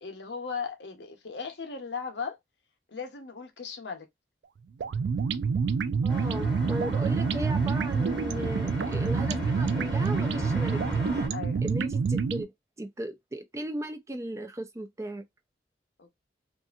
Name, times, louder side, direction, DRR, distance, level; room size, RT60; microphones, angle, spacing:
voice 1, 0.0-2.4 2.9-4.1 11.3-11.6 16.0-16.1, left 5 dB, 80° left, 0.9 m, -37 dB
sound 1, 4.8-12.4, right 5 dB, 80° right, 0.4 m, -27 dB
voice 2, 6.0-10.8 11.1-11.2 11.6-12.5 12.8-15.2, right 1 dB, 15° right, 0.4 m, -36 dB
sound 2, 6.1-11.3, left 1 dB, 5° left, 1.4 m, -35 dB
2.7 x 2.5 x 2.4 m
head